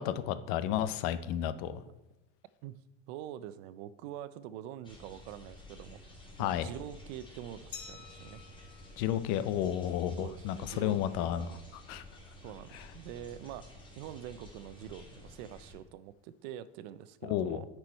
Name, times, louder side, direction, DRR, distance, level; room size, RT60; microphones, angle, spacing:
voice 1, 0.0-1.8 6.4-6.7 9.0-12.0 12.7-12.9 17.2-17.6, left 11 dB, 70° left, 14 dB, 0.6 m, -32 dB
voice 2, 3.1-6.0 6.4-8.4 10.2-11.7 12.4-13.7 14.0-17.7, right 11 dB, 85° right, 15 dB, 0.6 m, -45 dB
sound 1, 4.8-15.7, left 1 dB, 15° left, 1.4 m, -52 dB
Glass, 7.7-10.4, left 7 dB, 85° left, 1.4 m, -51 dB
9.4 x 4.6 x 4.4 m, 1.0 s
cardioid pair, 145°, 31 cm